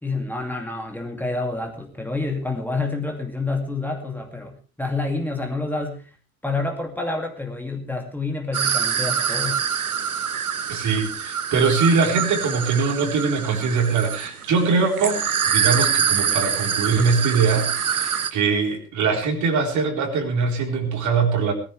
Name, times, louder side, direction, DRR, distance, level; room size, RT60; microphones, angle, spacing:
voice 1, 0.0-6.1 6.4-9.7, left 3 dB, 5° left, 2 dB, 2.5 m, -28 dB
sound 1, 8.5-18.3, right 8 dB, 80° right, 1.1 m, -25 dB
voice 2, 10.7-15.2 15.5-21.5, right 5 dB, 40° right, 3 dB, 4.1 m, -22 dB
21.0 x 14.0 x 3.4 m, 0.35 s
figure-of-eight pair, 70°, 43 cm